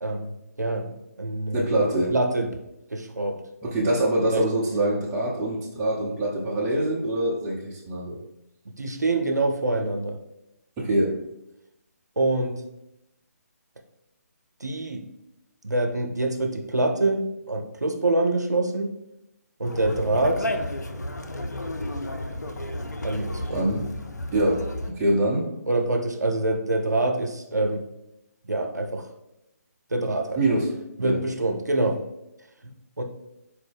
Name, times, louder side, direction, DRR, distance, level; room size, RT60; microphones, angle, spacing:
voice 1, 0.0-2.5 2.9-3.4 4.3-4.5 8.8-10.2 12.2-12.6 14.6-15.0 15.6-18.9 19.6-20.5 23.0-23.6 25.7-27.8 28.5-29.1 29.9-30.4 31.0-32.0 33.0-33.1, right 2 dB, 85° right, 4 dB, 0.5 m, -25 dB
voice 2, 1.5-2.1 3.6-8.2 10.8-11.2 23.5-23.8 24.3-25.5 30.4-30.7 31.0-31.2, right 1 dB, 15° right, -5 dB, 0.6 m, -24 dB
Conversation, 19.6-24.9, left 1 dB, 90° left, 0.4 m, -32 dB
4.5 x 2.0 x 3.4 m, 0.88 s
figure-of-eight pair, 145°, 9 cm